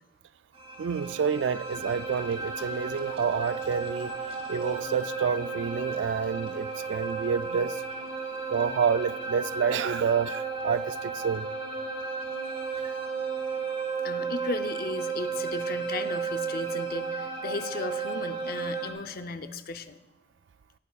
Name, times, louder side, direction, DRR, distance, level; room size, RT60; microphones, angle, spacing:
sound 1, 0.6-18.9, right 4 dB, 30° right, 1.9 m, -34 dB
voice 1, 0.8-4.2 4.5-7.8 8.5-11.5 12.8-12.9, right 6 dB, 75° right, 0.3 m, -28 dB
voice 2, 14.0-20.0, left 3 dB, 55° left, 0.6 m, -36 dB
19.5 x 9.5 x 2.4 m
head